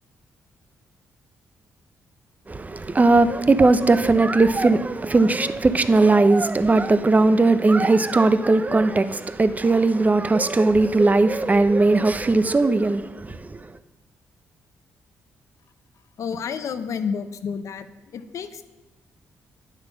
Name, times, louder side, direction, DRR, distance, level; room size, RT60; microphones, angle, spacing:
voice 1, 2.5-13.7, right 3 dB, 30° right, 0.7 m, -18 dB
voice 2, 16.2-17.9 18.1-18.6, left 6 dB, 65° left, 0.7 m, -30 dB
9.7 x 7.3 x 5.8 m
supercardioid pair, 50°, 6 cm